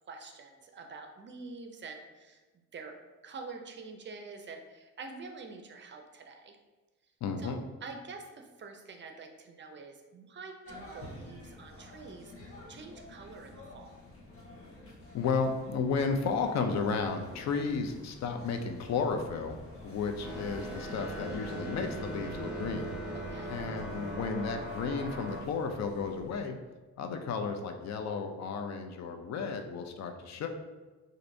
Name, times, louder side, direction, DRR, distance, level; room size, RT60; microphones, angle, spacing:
voice 1, 0.1-2.9 3.2-6.6 7.4-14.0 23.1-23.5, right 4 dB, 40° right, 4 dB, 0.5 m, -47 dB
voice 2, 7.2-7.6 15.1-19.5 19.8-22.9 23.5-26.6 27.0-30.5, left 5 dB, 60° left, 6 dB, 0.5 m, -33 dB
sound 1, 10.6-26.3, left 1 dB, 45° left, 1.1 m, -50 dB
sound 2, 20.2-25.4, right 1 dB, 5° right, 1.0 m, -39 dB
4.3 x 2.6 x 2.6 m, 1.2 s
cardioid pair, 90°, 30 cm